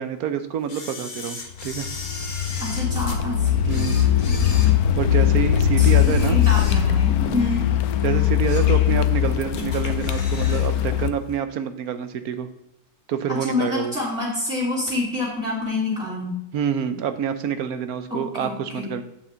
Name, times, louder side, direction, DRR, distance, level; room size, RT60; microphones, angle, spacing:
voice 1, 0.0-1.9 3.7-4.1 4.6-4.7 5.0-6.4 7.2-7.5 8.0-12.5 13.1-13.9 16.5-19.0, right 8 dB, 75° right, 10 dB, 1.2 m, -27 dB
Camera, 0.7-3.2 3.6-5.3 5.7-7.1 7.5-7.7 8.2-8.8 9.1-9.2 9.5-10.7 11.0-11.1, left 3 dB, 35° left, 1.1 m, -37 dB
Car, 1.6-11.1, left 11 dB, 75° left, 1.1 m, -20 dB
voice 2, 2.6-3.9 4.3-4.7 5.8-7.7 13.3-16.3 18.1-18.9, left 2 dB, 5° right, -10 dB, 3.4 m, -28 dB
8.7 x 6.1 x 3.9 m, 0.82 s
omnidirectional pair, 1.6 m